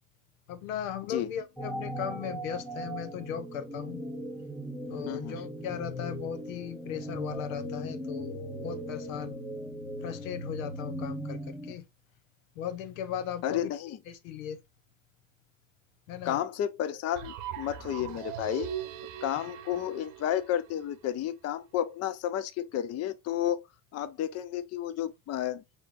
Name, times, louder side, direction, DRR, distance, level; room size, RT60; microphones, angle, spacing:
voice 1, 0.5-4.0 4.9-9.4 10.0-11.8 12.6-13.7 14.1-14.6 16.1-16.4, left 8 dB, 85° left, 0.9 m, -37 dB
sound 1, 1.6-11.7, equal, ahead, 0.8 m, -38 dB
voice 2, 13.4-14.0 16.3-18.7 19.2-23.6 23.9-25.6, left 11 dB, 40° left, 0.6 m, -32 dB
sound 2, 17.1-21.1, right 10 dB, 70° right, 1.0 m, -40 dB
4.3 x 3.7 x 2.4 m
supercardioid pair, 90°, 39 cm